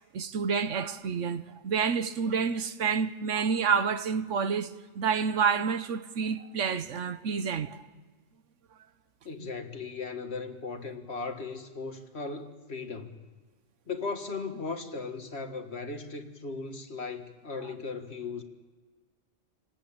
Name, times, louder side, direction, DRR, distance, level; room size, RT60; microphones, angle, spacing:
voice 1, 0.1-7.8 9.4-9.5, right 6 dB, 80° right, 1.3 m, -29 dB
voice 2, 9.3-13.2 13.9-18.4, left 4 dB, 60° left, 2.0 m, -37 dB
29.0 x 19.0 x 8.8 m
omnidirectional pair, 1.3 m